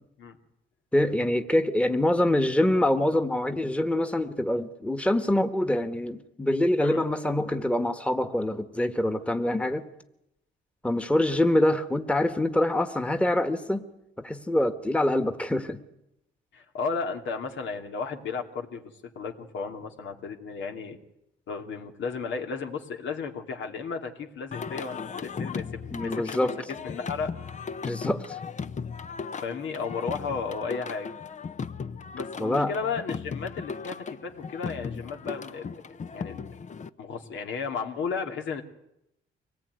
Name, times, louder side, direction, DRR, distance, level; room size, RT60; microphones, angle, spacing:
voice 1, 0.9-9.9 10.8-13.9 14.2-15.8 25.9-26.5 27.9-28.4 32.4-32.7, left 1 dB, 5° left, 8 dB, 1.6 m, -25 dB
voice 2, 16.5-21.0 21.5-27.3 29.4-31.1 32.1-35.8 36.1-36.5 37.0-38.6, left 5 dB, 75° left, 4 dB, 2.7 m, -34 dB
Singing, 24.5-36.9, left 5 dB, 35° left, 0.9 m, -37 dB
24.0 x 19.0 x 9.5 m, 0.85 s
cardioid pair, 90°, 20 cm